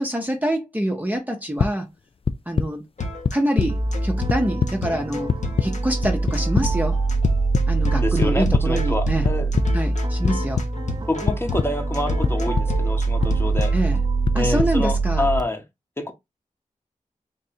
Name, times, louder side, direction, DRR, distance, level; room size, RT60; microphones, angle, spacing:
voice 1, 0.0-1.9 2.5-2.8 3.3-5.3 5.6-7.0 7.7-9.3 9.7-10.6 13.7-14.0 14.3-15.3, right 1 dB, 10° right, 0.8 m, -25 dB
sound 1, 1.6-1.7 2.2-2.7 3.2-3.7 4.0-4.7 5.3-5.7 6.3-6.7 7.2-7.6 8.2-8.6 9.2-9.7 10.2-10.7 11.3-11.7 12.2-12.7 13.2-13.7 14.2-14.7, left 5 dB, 45° left, 0.4 m, -21 dB
sound 2, 3.0-13.8, left 2 dB, 60° left, 1.2 m, -32 dB
sound 3, 3.7-15.4, right 3 dB, 30° right, 0.4 m, -24 dB
voice 2, 7.9-9.5 11.1-13.7 14.3-15.6 16.0-16.1, left 2 dB, 15° left, 1.0 m, -27 dB
3.6 x 2.6 x 4.2 m
wide cardioid pair, 70°, 14 cm